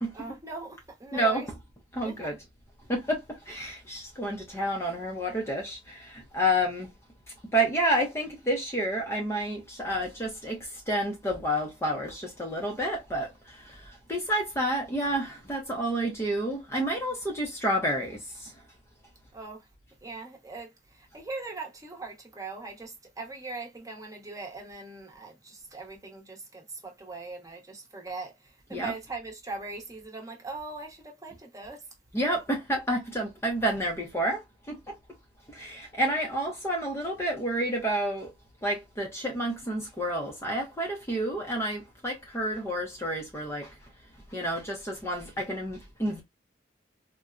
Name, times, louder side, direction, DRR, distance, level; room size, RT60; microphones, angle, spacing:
voice 1, 0.1-1.5 2.0-2.2 19.3-19.7 20.0-31.9, right 3 dB, 20° right, 0.9 m, -40 dB
voice 2, 1.1-1.5 1.9-2.4 2.9-6.9 7.5-18.6 28.7-28.9 32.1-35.0 35.5-38.3 38.6-43.8 44.3-46.2, right 1 dB, 15° left, 0.6 m, -30 dB
4.1 x 2.1 x 2.4 m
head